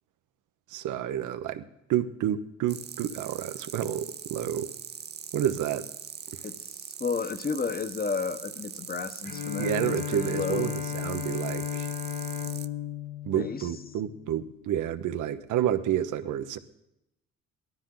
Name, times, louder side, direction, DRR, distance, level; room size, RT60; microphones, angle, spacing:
voice 1, 0.7-1.6 1.9-4.7 5.3-5.9 6.3-6.4 9.6-11.9 13.2-16.6, right 10 dB, 85° right, 10 dB, 1.0 m, -29 dB
sound 1, 2.7-12.7, right 7 dB, 35° right, 0.7 m, -42 dB
voice 2, 6.4-10.7 13.3-13.7, left 5 dB, 30° left, 11 dB, 1.1 m, -32 dB
Bowed string instrument, 9.2-14.5, left 9 dB, 60° left, 2.7 m, -35 dB
18.0 x 12.5 x 3.9 m, 0.85 s
cardioid pair, 90°, 30 cm